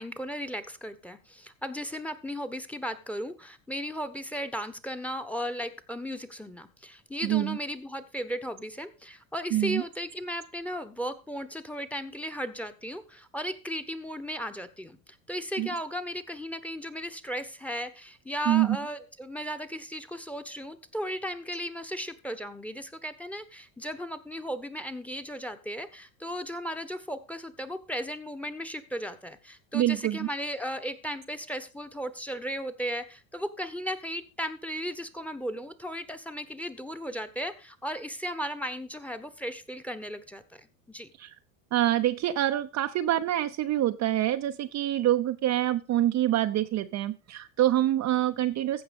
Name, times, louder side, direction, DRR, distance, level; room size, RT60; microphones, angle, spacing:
voice 1, 0.0-41.1, equal, 5° left, 12 dB, 1.2 m, -36 dB
voice 2, 7.2-7.6 9.5-9.8 15.6-15.7 18.5-18.8 29.7-30.3 41.2-41.3 41.7-48.8, right 13 dB, 40° right, 7 dB, 0.8 m, -26 dB
15.5 x 5.6 x 5.3 m, 0.33 s
hypercardioid pair, 85°, 42 cm